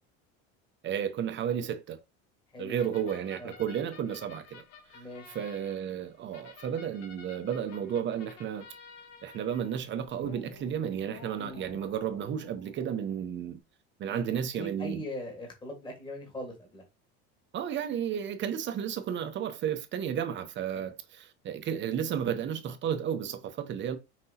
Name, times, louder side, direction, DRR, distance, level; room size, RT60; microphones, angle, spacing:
voice 1, 0.8-2.0 2.6-4.6 4.9-8.7 9.2-13.6 14.0-15.0 17.5-24.0, right 8 dB, 35° right, 0.7 m, -33 dB
sound 1, 2.8-13.1, left 5 dB, 55° left, 1.0 m, -52 dB
voice 2, 4.9-5.3 11.4-11.7 14.1-14.2 14.5-16.8, equal, 15° left, 1.5 m, -40 dB
5.6 x 2.9 x 2.7 m
supercardioid pair, 120°, 32 cm